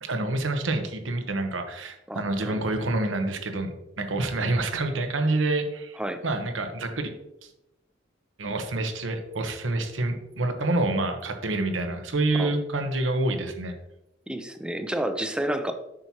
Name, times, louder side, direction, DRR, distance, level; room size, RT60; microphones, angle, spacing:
voice 1, 0.0-6.0 6.2-7.1 8.4-13.7, right 2 dB, 80° right, 6 dB, 1.0 m, -27 dB
voice 2, 2.1-2.6 6.0-6.2 12.3-12.5 14.3-15.7, right 1 dB, 5° right, 8 dB, 0.5 m, -30 dB
7.6 x 6.1 x 2.8 m, 0.88 s
head